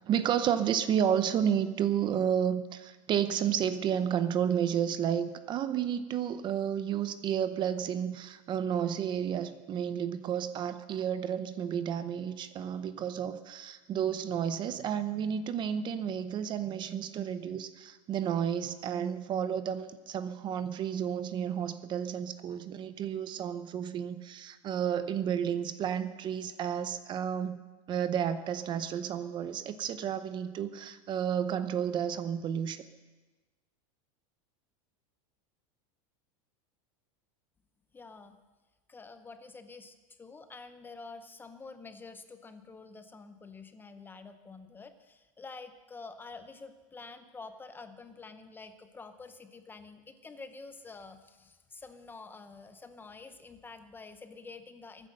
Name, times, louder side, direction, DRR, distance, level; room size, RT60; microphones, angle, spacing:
voice 1, 0.1-27.6 27.9-32.8, right 8 dB, 25° right, 12 dB, 0.7 m, -31 dB
voice 2, 37.9-38.4 38.9-55.1, left 4 dB, 10° left, 9 dB, 0.7 m, -48 dB
22.0 x 9.8 x 6.5 m, 1.2 s
supercardioid pair, 155°, 18 cm